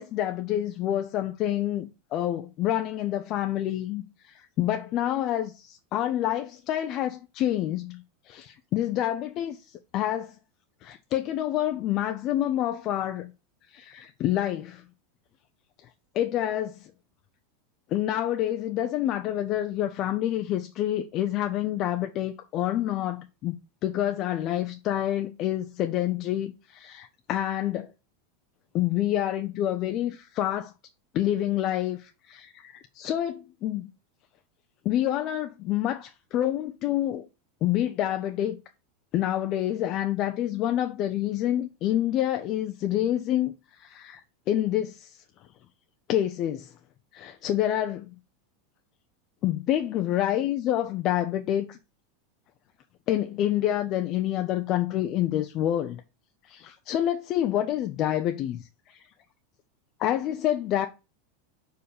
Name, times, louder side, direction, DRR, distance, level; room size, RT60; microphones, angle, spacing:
voice 1, 0.0-10.3 10.8-13.3 13.7-14.8 16.1-16.9 17.9-23.5 23.8-27.9 28.7-30.7 31.1-33.9 34.8-37.3 37.6-38.6 39.1-45.2 46.1-46.7 47.1-48.1 49.4-51.8 53.1-56.0 56.4-59.0 60.0-60.9, left 12 dB, 45° left, 0.6 m, -28 dB
5.2 x 4.6 x 5.0 m
hypercardioid pair, 100°, 0 cm